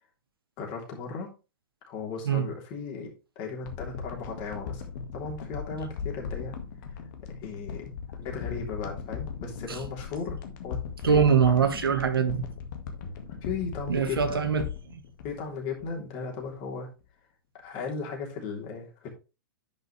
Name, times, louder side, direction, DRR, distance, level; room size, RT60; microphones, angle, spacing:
voice 1, 0.6-1.3 1.8-4.8 5.1-6.6 6.9-7.0 7.4-7.8 8.2-11.5 13.3-14.5 15.2-16.9 17.5-19.1, left 5 dB, 40° left, 3.3 m, -36 dB
sound 1, 3.6-16.1 16.4-16.5, left 6 dB, 60° left, 1.8 m, -38 dB
voice 2, 11.0-12.4 13.9-15.0, right 7 dB, 85° right, 1.6 m, -23 dB
10.5 x 5.2 x 3.3 m
hypercardioid pair, 120°, 12 cm